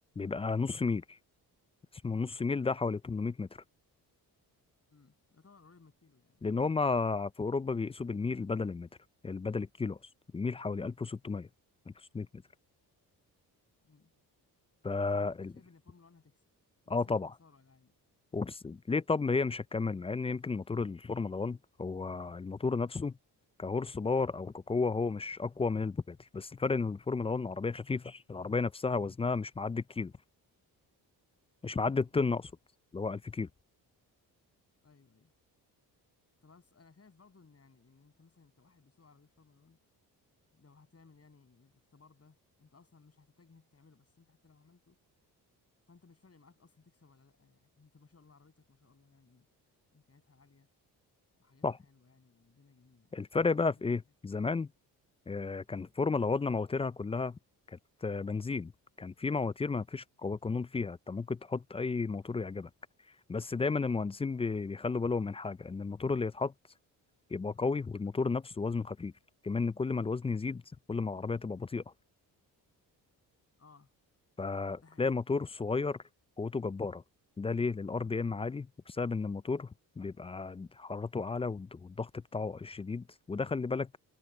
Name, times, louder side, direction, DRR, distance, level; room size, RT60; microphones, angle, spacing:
voice 1, 0.2-1.2 2.0-3.5 6.4-8.9 9.2-10.0 10.3-11.5 11.9-12.3 14.8-15.5 16.9-17.3 18.3-23.2 23.6-30.1 31.6-32.4 32.9-33.5 51.6-51.8 53.1-54.7 55.3-57.4 57.7-58.7 59.0-62.7 63.3-66.5 67.3-69.1 69.4-70.6 70.9-71.8 74.4-76.0 76.4-77.0 77.4-84.0, left 4 dB, 15° left, 0.3 m, -33 dB
voice 2, 4.9-6.5 13.8-14.1 15.1-16.5 16.8-17.9 31.9-32.1 34.8-35.3 36.4-39.8 40.5-45.0 45.9-49.5 49.9-50.7 51.3-54.0 73.6-73.9 74.8-75.2, left 4 dB, 35° left, 7.9 m, -62 dB
supercardioid pair, 60°, 42 cm